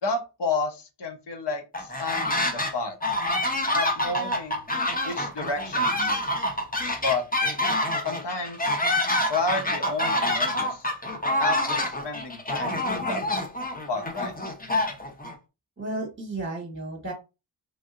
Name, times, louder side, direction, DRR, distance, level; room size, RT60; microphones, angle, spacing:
voice 1, 0.0-2.9 3.7-4.6 5.0-6.2 7.0-7.3 8.0-8.7 9.3-10.9 11.4-13.2 13.9-14.3, left 3 dB, 60° left, 5 dB, 0.9 m, -31 dB
sound 1, 1.7-2.7 3.0-15.3, left 1 dB, 20° left, 0.8 m, -26 dB
voice 2, 15.8-17.1, right 2 dB, 25° right, -1 dB, 1.5 m, -33 dB
3.3 x 2.7 x 2.5 m, 0.28 s
wide cardioid pair, 75°, 47 cm